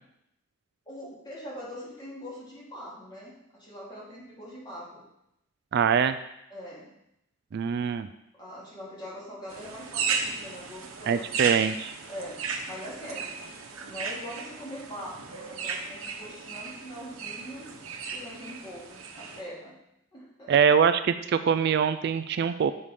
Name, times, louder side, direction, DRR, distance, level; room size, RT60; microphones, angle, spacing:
voice 1, 0.9-5.0 6.5-6.9 8.3-11.3 12.1-12.4 12.7-13.4 13.8-17.7 18.1-19.7 20.1-20.6, equal, 20° left, -6 dB, 2.5 m, -42 dB
voice 2, 5.7-6.2 7.5-8.1 11.1-11.9 20.5-22.7, right 7 dB, 50° right, 11 dB, 0.3 m, -23 dB
sound 1, 9.5-19.4, right 5 dB, 80° right, 0.9 m, -35 dB
7.3 x 5.4 x 4.9 m, 0.82 s
head